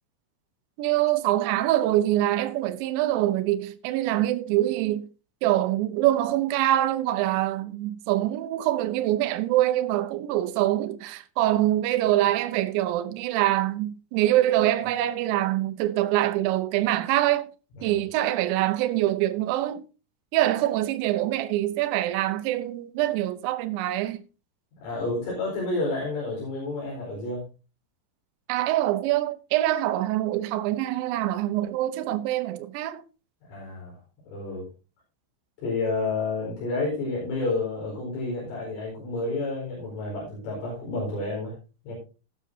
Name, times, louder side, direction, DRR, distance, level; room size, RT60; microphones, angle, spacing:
voice 1, 0.8-5.1 5.4-17.5 17.8-19.8 20.3-24.2 28.5-33.0, right 14 dB, 80° right, 2.8 m, -24 dB
voice 2, 24.8-27.4 33.5-33.9 34.3-34.7 35.6-41.5 41.9-42.0, left 3 dB, 75° left, 7.1 m, -30 dB
19.0 x 6.9 x 2.8 m
omnidirectional pair, 5.8 m